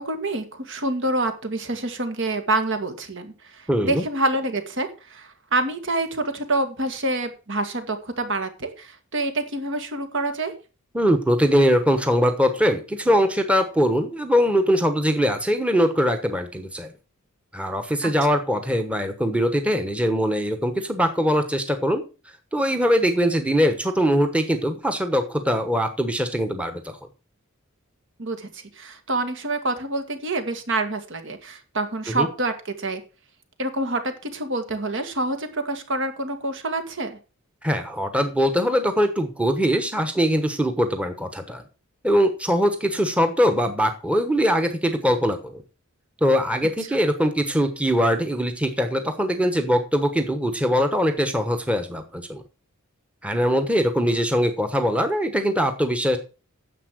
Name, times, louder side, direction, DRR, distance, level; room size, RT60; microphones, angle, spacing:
voice 1, 0.0-10.5 18.0-18.1 28.2-33.0 33.6-37.2 46.8-47.0, right 2 dB, 60° right, 7 dB, 2.0 m, -27 dB
voice 2, 3.7-4.0 10.9-16.9 17.5-22.0 22.5-27.0 32.1-32.3 37.6-41.6 42.0-45.6 46.2-52.4 53.2-56.2, equal, 5° right, 7 dB, 1.1 m, -22 dB
10.0 x 7.4 x 6.2 m, 0.33 s
head